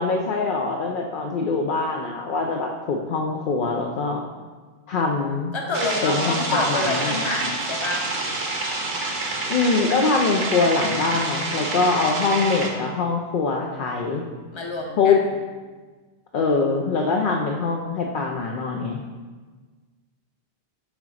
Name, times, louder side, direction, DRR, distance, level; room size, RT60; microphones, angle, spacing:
voice 1, 0.0-4.2 4.9-5.5 6.0-7.1 9.5-14.3 15.0-15.2 16.3-19.0, left 4 dB, 60° left, 0 dB, 0.7 m, -23 dB
voice 2, 5.5-8.1 14.5-15.2, left 2 dB, 30° left, 1 dB, 0.8 m, -28 dB
sound 1, 5.7-12.7, right 2 dB, 75° right, 1.2 m, -28 dB
6.2 x 3.9 x 4.9 m, 1.4 s
omnidirectional pair, 1.1 m